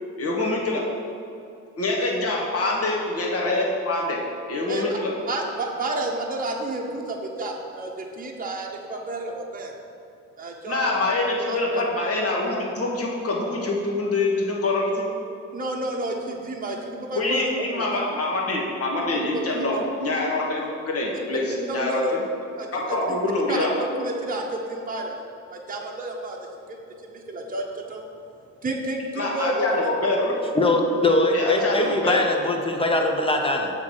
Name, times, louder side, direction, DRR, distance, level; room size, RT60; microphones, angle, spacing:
voice 1, 0.2-0.8 1.8-4.2 4.5-5.1 10.6-15.0 17.1-21.4 21.7-22.0 22.7-23.7 29.2-30.4 31.3-32.3 32.8-32.9, left 2 dB, 50° left, -2 dB, 1.6 m, -25 dB
voice 2, 5.3-9.7 10.4-11.0 11.5-11.8 15.5-17.8 19.1-19.8 21.5-22.2 22.6-23.2 23.5-25.2 25.5-26.4 26.7-26.8 27.0-28.0 28.6-29.8, right 1 dB, 30° right, 0 dB, 1.0 m, -30 dB
voice 3, 30.5-33.7, left 2 dB, 20° left, 3 dB, 0.9 m, -21 dB
7.0 x 3.7 x 6.2 m, 2.5 s
cardioid pair, 90°, 30 cm